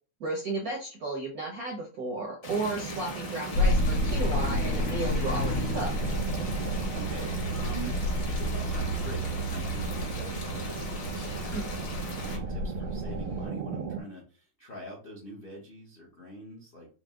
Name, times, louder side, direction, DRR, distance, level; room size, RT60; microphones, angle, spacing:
voice 1, 0.2-5.9 11.5-11.6, right 2 dB, 70° right, 0 dB, 0.8 m, -33 dB
sound 1, 2.4-12.4, left 2 dB, 45° left, 1.0 m, -41 dB
sound 2, 2.4-14.0, right 6 dB, 90° right, 1.6 m, -38 dB
sound 3, 3.5-13.5, left 1 dB, 80° left, 1.9 m, -30 dB
voice 2, 6.5-7.9 8.3-16.9, right 1 dB, 60° left, -2 dB, 0.5 m, -44 dB
4.6 x 2.1 x 3.6 m, 0.36 s
omnidirectional pair, 2.4 m